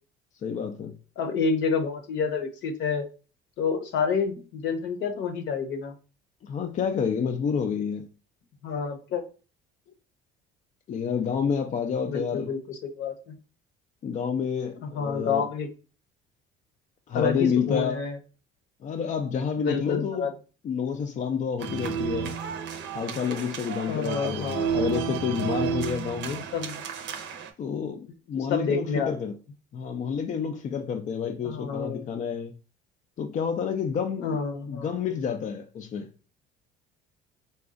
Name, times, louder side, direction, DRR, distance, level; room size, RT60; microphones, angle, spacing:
voice 1, 0.4-1.0 6.4-8.1 10.9-12.5 14.0-15.5 17.1-18.1 18.8-20.3 20.6-22.4 22.9-26.4 27.6-29.3 29.7-32.5 33.2-34.4 34.7-36.1, left 7 dB, 40° left, 0.4 m, -29 dB
voice 2, 1.2-3.1 3.6-5.9 8.6-9.2 12.1-13.3 14.9-15.7 17.1-18.2 19.6-20.3 23.9-24.7 25.9-26.1 26.5-26.8 28.4-29.1 31.4-32.0 34.2-34.9, left 5 dB, 65° left, 0.8 m, -28 dB
sound 1, 21.6-27.5, right 7 dB, 65° right, 0.6 m, -31 dB
4.0 x 2.3 x 2.4 m
supercardioid pair, 100°, 20 cm